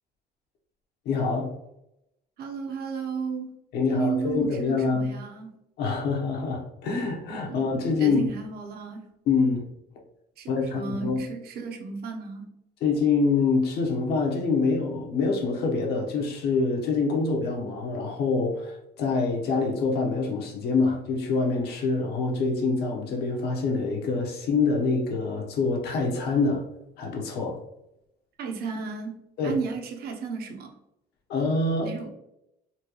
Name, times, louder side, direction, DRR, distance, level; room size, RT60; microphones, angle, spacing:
voice 1, 1.0-1.5 3.7-5.1 5.8-8.2 9.3-9.6 10.5-11.2 12.8-26.6 27.0-27.6 29.4-29.6 31.3-31.9, left 4 dB, 75° left, 0 dB, 1.0 m, -25 dB
voice 2, 2.4-3.5 3.9-5.5 7.5-7.6 8.0-9.1 10.4-12.6 28.4-30.7 31.8-32.1, right 5 dB, 65° right, 3 dB, 0.8 m, -33 dB
4.2 x 2.3 x 3.0 m, 0.83 s
cardioid pair, 110°, 17 cm